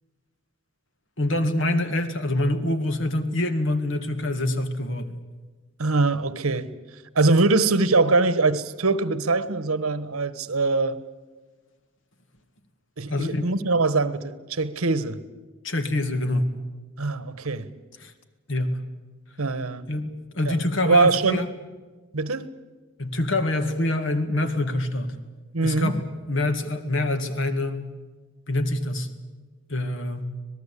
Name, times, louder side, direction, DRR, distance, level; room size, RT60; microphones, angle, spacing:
voice 1, 1.2-5.2 13.1-13.5 15.6-16.5 18.0-18.1 18.5-18.8 19.9-21.5 23.0-25.2 25.6-26.0 26.3-27.9 28.5-29.1 29.7-30.3, left 1 dB, 60° left, 2.1 m, -25 dB
voice 2, 5.8-6.7 7.1-11.0 13.0-15.2 17.0-17.7 19.4-19.9 20.5-20.6 20.8-21.4 22.1-22.5 25.5-25.9, right 3 dB, 90° right, 1.2 m, -22 dB
25.5 x 19.0 x 8.4 m
head